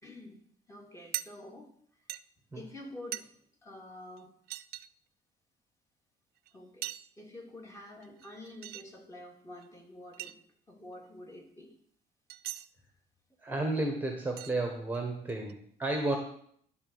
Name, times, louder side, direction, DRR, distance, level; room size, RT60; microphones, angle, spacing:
voice 1, 0.0-0.4 0.7-1.7 2.5-3.3 3.6-4.3 6.5-6.9 7.2-10.4 10.7-11.7, left 1 dB, 15° left, 0 dB, 2.6 m, -48 dB
sound 1, 1.1-1.3 2.1-2.2 3.1-3.2 4.2-4.3 4.5-4.9 6.5-6.6 6.8-7.2 8.0-8.8 9.6-9.7 10.1-10.3 12.3-12.7 13.7-13.8 14.4-14.6 14.9-15.5, right 15 dB, 65° right, 0.4 m, -40 dB
voice 2, 13.4-16.2, right 2 dB, 10° right, 3 dB, 1.4 m, -32 dB
11.5 x 4.1 x 7.9 m, 0.63 s
cardioid pair, 110°, 17 cm